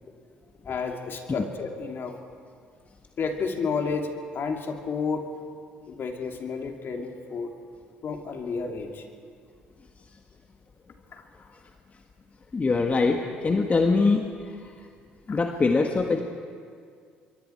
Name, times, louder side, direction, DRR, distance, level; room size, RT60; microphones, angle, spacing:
voice 1, 0.6-2.1 3.2-5.3 5.9-7.5 8.0-9.0 11.1-11.2 15.3-15.4, left 5 dB, 50° left, 3 dB, 2.8 m, -31 dB
voice 2, 12.5-14.3 14.6-14.7 15.3-16.2, left 3 dB, 30° left, 3 dB, 1.6 m, -23 dB
26.5 x 23.0 x 4.6 m, 2.2 s
hypercardioid pair, 60°, 5 cm